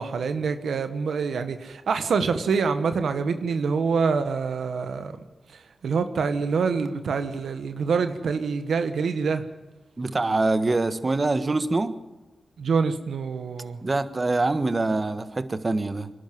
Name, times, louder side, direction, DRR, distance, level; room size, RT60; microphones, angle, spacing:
voice 1, 0.0-5.2 5.5-9.4 12.6-13.8, right 5 dB, 90° right, 9 dB, 1.2 m, -26 dB
voice 2, 10.0-11.9 13.8-16.1, right 2 dB, 40° right, 12 dB, 1.5 m, -24 dB
24.5 x 11.5 x 9.5 m, 1.1 s
cardioid pair, 55°, 0 cm